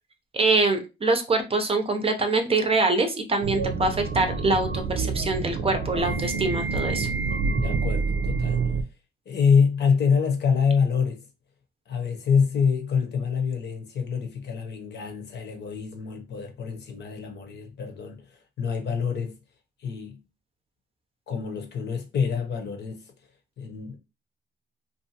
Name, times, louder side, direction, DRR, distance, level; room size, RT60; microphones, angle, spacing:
voice 1, 0.3-7.1, right 3 dB, 30° right, 0.6 m, -24 dB
sound 1, 3.4-8.8, right 4 dB, 75° right, 0.6 m, -27 dB
voice 2, 7.5-8.6 9.3-11.3 11.9-19.4 19.8-20.2 21.3-23.1 23.6-24.0, left 6 dB, 60° left, 0.8 m, -26 dB
2.6 x 2.3 x 2.8 m
cardioid pair, 90°, 20 cm